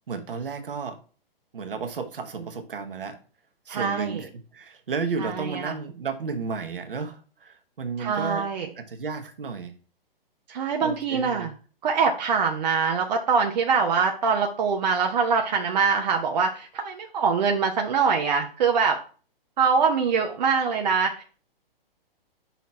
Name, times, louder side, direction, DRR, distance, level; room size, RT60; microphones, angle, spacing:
voice 1, 0.1-1.0 1.5-3.2 3.7-8.5 8.8-9.7 10.5-11.5, right 5 dB, 65° right, 7 dB, 1.2 m, -33 dB
voice 2, 3.7-4.2 5.2-5.7 8.0-8.7 10.5-11.5 11.8-19.0 19.6-21.2, right 5 dB, 45° right, 2 dB, 0.8 m, -24 dB
5.9 x 4.1 x 4.2 m, 0.38 s
figure-of-eight pair, 125°, 30 cm